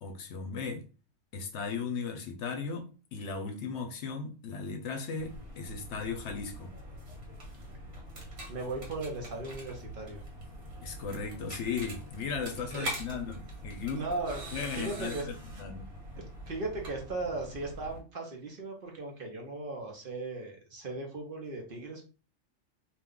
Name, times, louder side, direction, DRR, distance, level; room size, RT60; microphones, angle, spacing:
voice 1, 0.0-0.9 1.3-6.8 10.8-14.0 14.5-15.8, left 5 dB, 70° left, 0.9 m, -37 dB
sound 1, 5.2-18.0, right 1 dB, 70° right, 1.3 m, -43 dB
voice 2, 8.5-10.2 12.7-12.9 13.9-15.3 16.2-22.0, right 2 dB, 50° right, 0.8 m, -37 dB
2.5 x 2.2 x 3.6 m
omnidirectional pair, 1.3 m